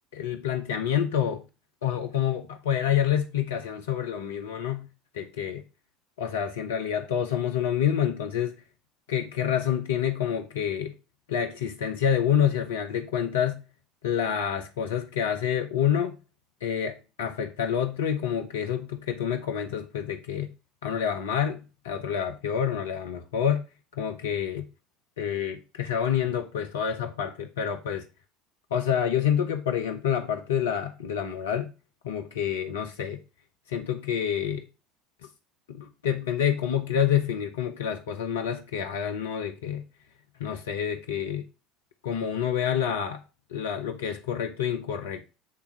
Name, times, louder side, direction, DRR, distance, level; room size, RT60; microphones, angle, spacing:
voice 1, 0.1-1.4 1.8-4.9 5.1-5.6 6.2-8.5 9.1-10.9 11.3-13.6 14.0-16.1 16.6-20.5 20.8-23.6 24.0-24.6 25.2-28.1 28.7-31.7 32.0-33.2 33.7-34.6 35.7-39.8 40.4-41.4 42.0-43.2 43.5-45.2, left 9 dB, 70° left, 0.8 m, -28 dB
8.7 x 3.5 x 5.3 m
figure-of-eight pair, 70°, 0 cm